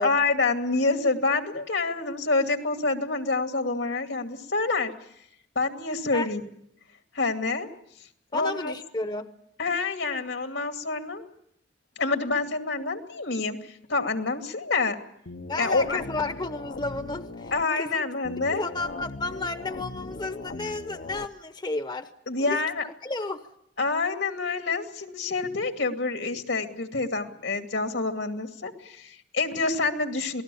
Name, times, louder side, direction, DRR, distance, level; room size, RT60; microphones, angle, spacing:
voice 1, 0.0-4.9 5.6-6.4 7.1-7.7 8.3-8.7 9.6-11.2 12.0-15.0 15.6-16.0 17.5-18.6 22.3-22.8 23.8-30.4, left 3 dB, 80° left, 6 dB, 2.5 m, -27 dB
voice 2, 8.3-9.3 15.5-18.0 18.5-22.1 22.4-23.4, left 3 dB, 25° left, 9 dB, 0.9 m, -32 dB
sound 1, 15.3-17.6 18.2-21.3, left 3 dB, 60° left, 0.8 m, -39 dB
28.0 x 19.5 x 7.0 m, 0.76 s
head